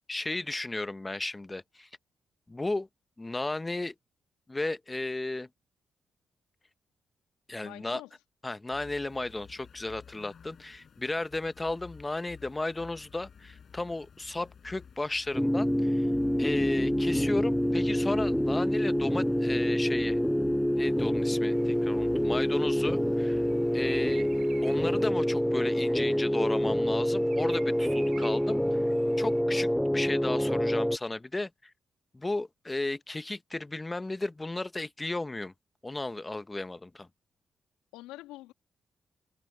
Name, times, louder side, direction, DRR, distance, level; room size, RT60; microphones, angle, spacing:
voice 1, 0.1-1.9 2.5-2.9 3.2-3.9 4.5-5.5 7.5-8.0 8.4-16.1 16.4-20.2 20.8-23.4 23.7-24.3 24.6-28.6 29.2-31.5 32.1-35.5 35.8-37.1, left 2 dB, 20° left, 1.2 m, -34 dB
voice 2, 7.6-8.1 22.3-22.8 37.9-38.5, left 17 dB, 85° left, 2.7 m, -46 dB
sound 1, 8.7-25.1, left 7 dB, 60° left, 6.1 m, -50 dB
sound 2, 15.3-31.0, equal, 5° left, 0.4 m, -27 dB
Bird vocalization bird call bird song, 21.5-29.4, right 9 dB, 70° right, 3.7 m, -52 dB
hypercardioid pair, 45°, 0 cm